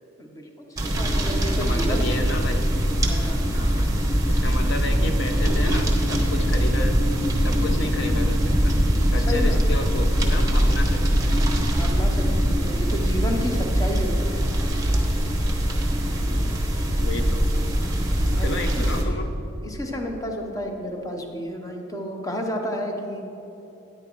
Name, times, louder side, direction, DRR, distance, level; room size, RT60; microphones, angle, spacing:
voice 1, 0.2-0.5 0.8-2.0 3.1-3.6 5.0-5.1 9.2-9.9 11.6-14.4 18.2-18.9 19.6-23.3, equal, 15° left, 2 dB, 0.8 m, -32 dB
sound 1, 0.8-19.0, equal, 15° right, 1.0 m, -22 dB
voice 2, 1.6-2.7 3.5-3.9 4.3-7.0 7.4-8.8 9.1-11.2 16.2-16.5 17.0-17.4 18.4-19.3, left 2 dB, 60° left, 6 dB, 0.7 m, -32 dB
12.5 x 10.0 x 3.1 m, 3.0 s
head